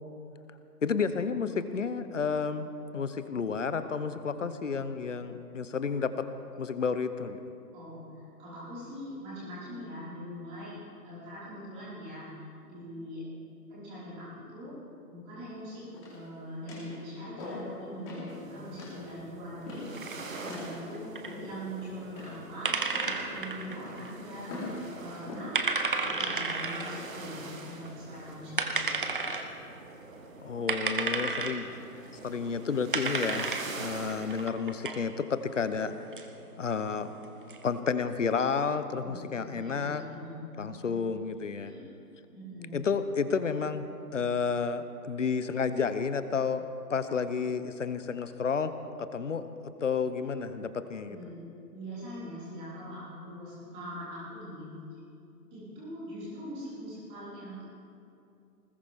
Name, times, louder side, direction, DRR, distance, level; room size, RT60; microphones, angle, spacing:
voice 1, 0.8-6.3 6.6-7.4 30.4-31.8 32.2-33.5 33.7-35.9 36.6-37.1 37.6-40.0 40.6-41.7 42.7-43.8 44.1-48.7 49.0-49.5 49.8-51.2, left 5 dB, 50° left, 11 dB, 0.9 m, -31 dB
voice 2, 7.7-10.8 11.0-12.3 12.6-13.2 13.7-14.8 15.1-19.8 20.3-24.5 25.0-25.5 26.0-29.3 39.0-41.1 41.6-41.9 42.3-42.8 51.0-54.7 55.5-57.6, equal, 10° right, -11 dB, 5.1 m, -42 dB
sound 1, 15.9-16.3 16.7-16.9 17.4-17.7 18.0-18.3 18.8-19.0 19.7-20.0 20.5-20.7 21.3-21.7 22.2-22.5 22.9-23.3 23.7-24.0 24.5-24.8 25.3-25.5 26.1-26.4 27.0-27.3, left 2 dB, 15° left, 3.9 m, -41 dB
sound 2, 18.3-34.5, right 3 dB, 55° right, 1.9 m, -46 dB
sound 3, 20.0-37.8, right 4 dB, 35° right, 0.9 m, -34 dB
20.5 x 19.5 x 3.7 m, 2.6 s
hypercardioid pair, 165°, 48 cm